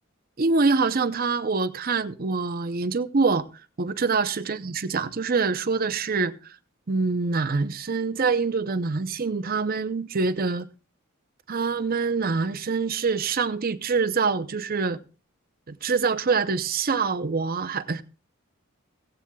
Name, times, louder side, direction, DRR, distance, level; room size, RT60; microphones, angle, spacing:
voice 1, 0.4-3.4 3.8-6.3 6.9-10.7 11.5-15.0 15.7-18.0, right 4 dB, 45° right, 0.6 m, -25 dB
17.0 x 16.0 x 2.3 m
head